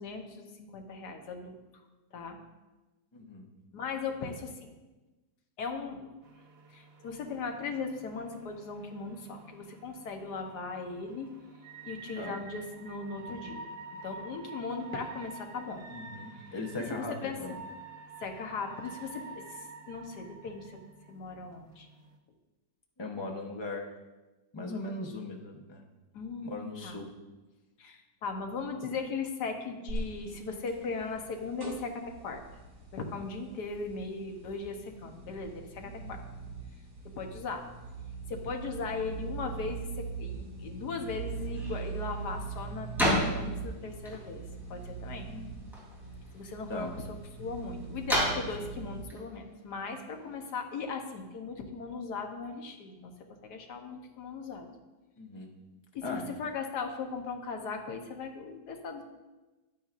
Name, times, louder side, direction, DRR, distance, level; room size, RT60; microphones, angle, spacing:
voice 1, 0.0-1.9 2.1-2.4 3.7-4.7 5.6-6.0 6.7-11.3 11.8-13.7 13.9-15.9 16.3-17.6 18.2-20.8 21.1-21.9 26.1-27.0 27.8-32.4 32.9-36.2 37.0-37.6 38.3-44.4 44.7-45.3 46.3-47.1 47.4-53.1 53.4-54.7 55.9-59.0, left 4 dB, 70° left, 4 dB, 1.5 m, -38 dB
voice 2, 3.1-3.5 12.2-12.3 15.9-17.5 23.0-24.0 24.5-25.8 26.4-27.1 35.8-36.2 45.3-45.8 46.7-46.9 55.2-55.5 56.0-56.3, left 2 dB, 25° left, 1 dB, 0.5 m, -39 dB
sound 1, 6.2-22.2, right 4 dB, 60° right, 0.6 m, -48 dB
sound 2, 29.9-49.1, right 4 dB, 80° right, 3.4 m, -41 dB
sound 3, 41.3-50.5, equal, ahead, 3.0 m, -36 dB
10.5 x 9.2 x 2.5 m, 1.1 s
omnidirectional pair, 1.9 m